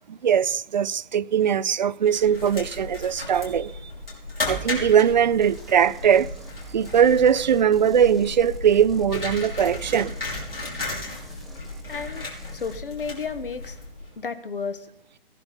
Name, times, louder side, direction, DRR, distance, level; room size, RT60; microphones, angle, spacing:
voice 1, 0.1-3.9 4.5-6.3 6.7-10.2, right 8 dB, 50° right, 0.5 m, -20 dB
sound 1, 2.1-14.1, left 2 dB, 80° left, 6.0 m, -35 dB
sound 2, 5.4-12.8, right 1 dB, ahead, 0.5 m, -47 dB
voice 2, 11.9-13.8 14.2-14.9, left 5 dB, 65° left, 1.3 m, -32 dB
17.5 x 11.0 x 4.0 m
figure-of-eight pair, 130°, 29 cm